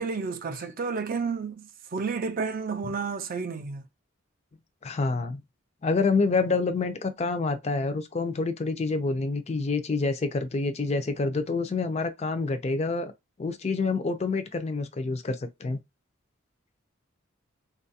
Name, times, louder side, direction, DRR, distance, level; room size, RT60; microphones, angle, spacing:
voice 1, 0.0-3.8, right 5 dB, 40° right, 0.4 m, -31 dB
voice 2, 4.8-5.4 5.8-13.1 13.4-15.8, left 3 dB, 30° left, 0.3 m, -27 dB
3.8 x 2.3 x 2.6 m
head